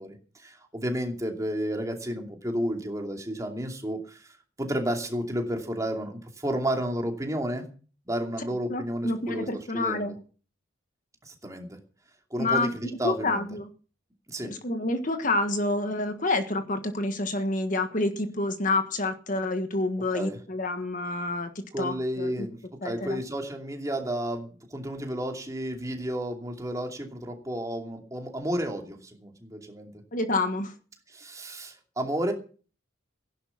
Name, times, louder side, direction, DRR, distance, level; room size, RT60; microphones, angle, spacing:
voice 1, 0.0-7.6 8.1-9.5 9.7-10.1 11.2-11.8 12.3-13.5 14.3-14.5 20.1-20.4 21.7-22.6 22.8-29.9 31.1-32.3, equal, 15° right, 3 dB, 2.6 m, -32 dB
voice 2, 8.7-10.1 12.4-12.7 13.0-13.7 14.4-22.5 22.8-23.2 30.1-30.7, left 2 dB, 40° left, 8 dB, 1.5 m, -28 dB
16.0 x 11.5 x 5.8 m, 0.39 s
head